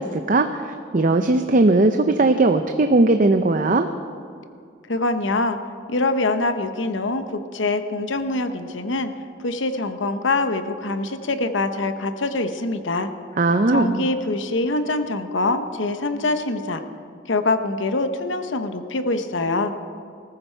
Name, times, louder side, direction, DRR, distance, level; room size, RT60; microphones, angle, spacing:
voice 1, 0.0-3.9 13.4-14.1, right 2 dB, 45° right, 7 dB, 0.6 m, -18 dB
voice 2, 4.9-5.6 5.9-9.1 9.4-13.1 13.7-16.8 17.3-19.7, left 2 dB, 80° left, 9 dB, 1.0 m, -24 dB
20.0 x 14.0 x 4.5 m, 2.3 s
head